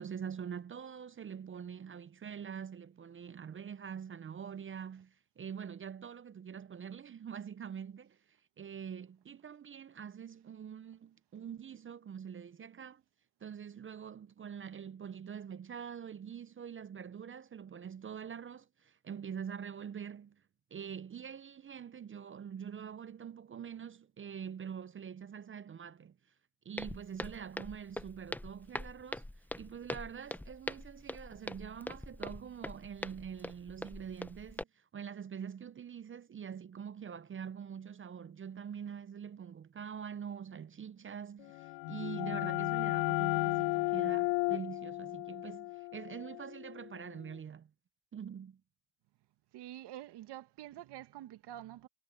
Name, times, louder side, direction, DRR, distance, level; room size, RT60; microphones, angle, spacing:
voice 1, 0.0-13.0 13.4-20.4 20.7-26.2 26.6-47.7 48.1-48.6, right 7 dB, 25° right, 0.7 m, -45 dB
Walk footsteps, 26.8-34.6, left 1 dB, 5° left, 0.8 m, -43 dB
sound 1, 41.5-47.0, left 29 dB, 90° left, 0.6 m, -34 dB
voice 2, 49.5-51.9, right 13 dB, 60° right, 1.8 m, -47 dB
supercardioid pair, 95°, 45 cm